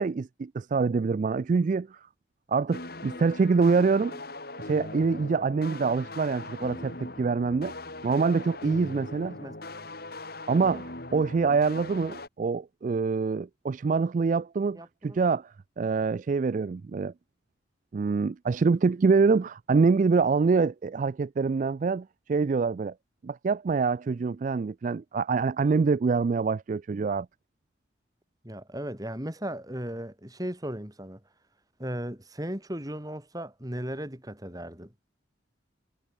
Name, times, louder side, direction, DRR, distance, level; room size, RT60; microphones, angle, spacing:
voice 1, 0.0-2.0 2.5-4.2 4.6-7.7 8.0-9.4 10.5-17.1 17.9-22.9 23.2-27.3, right 4 dB, 40° right, 0.3 m, -25 dB
sound 1, 2.7-12.3, left 2 dB, 50° left, 3.2 m, -40 dB
voice 2, 14.7-15.2 28.4-31.2 31.8-34.9, equal, 20° right, 3.0 m, -36 dB
head